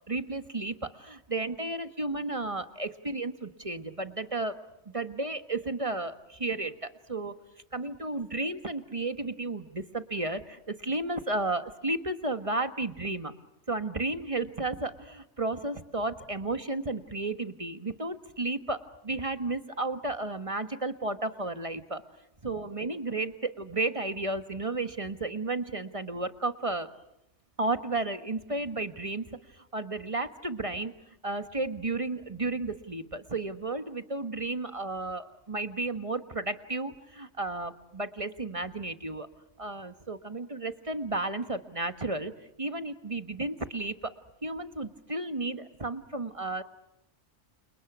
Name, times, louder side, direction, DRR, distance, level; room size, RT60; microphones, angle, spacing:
voice 1, 0.1-7.3 7.7-13.3 13.7-22.0 22.4-26.9 27.6-30.9 31.2-39.3 39.6-42.3 42.6-44.1 44.4-46.6, right 2 dB, 30° right, 10 dB, 1.3 m, -33 dB
30.0 x 29.0 x 6.1 m, 0.85 s
omnidirectional pair, 1.2 m